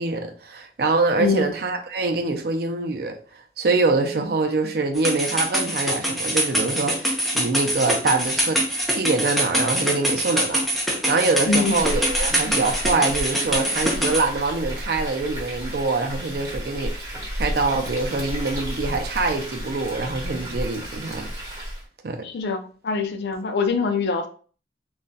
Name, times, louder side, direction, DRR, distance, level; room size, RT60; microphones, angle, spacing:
voice 1, 0.0-3.2 3.6-8.6 8.9-10.7 11.1-16.9 17.3-21.3 22.0-22.3, right 3 dB, 55° right, 0.5 m, -24 dB
sound 1, 5.0-14.2, equal, ahead, 0.5 m, -24 dB
voice 2, 11.5-11.8 22.2-24.3, left 4 dB, 65° left, 0.4 m, -24 dB
Frying (food), 11.5-21.8, equal, 20° right, 1.1 m, -32 dB
2.4 x 2.2 x 3.8 m
head